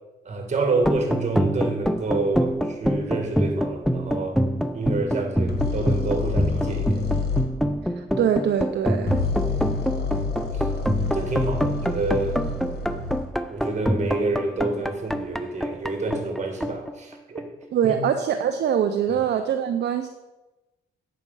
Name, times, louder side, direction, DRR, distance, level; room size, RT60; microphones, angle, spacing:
voice 1, 0.3-4.4 4.7-7.0 9.5-10.0 10.5-10.7 11.1-12.4 13.5-17.5 17.8-17.9 19.1-19.2, right 3 dB, 35° right, 4 dB, 2.1 m, -28 dB
sound 1, 0.8-17.6, equal, ahead, 0.5 m, -26 dB
sound 2, 5.5-7.5 9.0-13.3, left 4 dB, 55° left, 1.7 m, -28 dB
voice 2, 8.0-9.2 17.7-20.1, right 8 dB, 60° right, 7 dB, 0.6 m, -23 dB
8.3 x 6.6 x 5.5 m, 1.1 s
cardioid pair, 90°, 20 cm